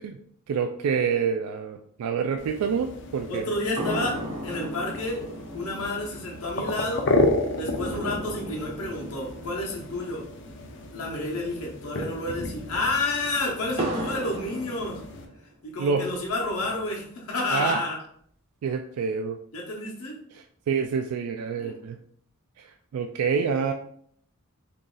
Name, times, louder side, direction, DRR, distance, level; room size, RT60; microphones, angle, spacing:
voice 1, 0.5-3.5 15.8-16.1 17.5-17.8 18.6-19.4 20.3-22.0 22.6-23.7, right 6 dB, 80° right, 5 dB, 0.3 m, -27 dB
sound 1, 2.4-15.3, left 2 dB, 55° left, 0.5 m, -32 dB
voice 2, 3.3-4.2 4.4-5.2 5.5-7.1 7.6-10.2 10.9-15.0 15.6-18.0 19.5-20.2 21.6-21.8, left 2 dB, 75° left, -2 dB, 0.9 m, -30 dB
sound 2, 3.8-11.4 11.6-11.7 12.2-15.5 16.0-17.0, right 1 dB, 25° right, 0.6 m, -37 dB
3.0 x 2.7 x 3.7 m, 0.64 s
head